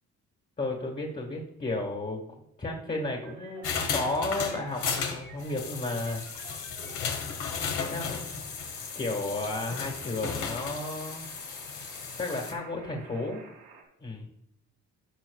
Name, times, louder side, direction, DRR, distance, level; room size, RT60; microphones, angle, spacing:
voice 1, 0.6-2.2 2.6-3.6 3.9-6.2 7.9-8.4 9.0-11.3 12.2-13.4 14.0-14.3, left 2 dB, 30° left, 0 dB, 1.8 m, -33 dB
sound 1, 3.2-13.8, right 5 dB, 90° right, 2.4 m, -51 dB
sound 2, 3.6-12.5, left 6 dB, 85° left, 1.8 m, -35 dB
14.5 x 5.9 x 2.4 m, 0.83 s
cardioid pair, 90°, 30 cm